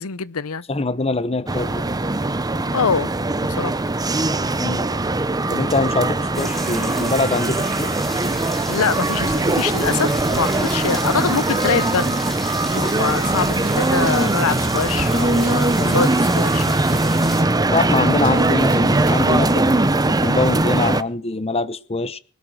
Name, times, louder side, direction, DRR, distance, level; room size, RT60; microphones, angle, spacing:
voice 1, 0.0-0.6 2.7-3.1 3.4-3.7 8.7-12.2 12.7-16.8, left 5 dB, 70° left, 0.8 m, -24 dB
voice 2, 0.7-1.9 4.6-4.9 5.5-8.0 15.8-16.0 17.7-22.2, left 3 dB, 25° left, 0.8 m, -23 dB
sound 1, 1.5-21.0, right 2 dB, 15° right, 0.7 m, -20 dB
sound 2, 6.3-17.4, equal, ahead, 3.7 m, -33 dB
Tools, 12.8-19.4, right 2 dB, 40° right, 3.9 m, -37 dB
20.5 x 12.5 x 4.9 m
head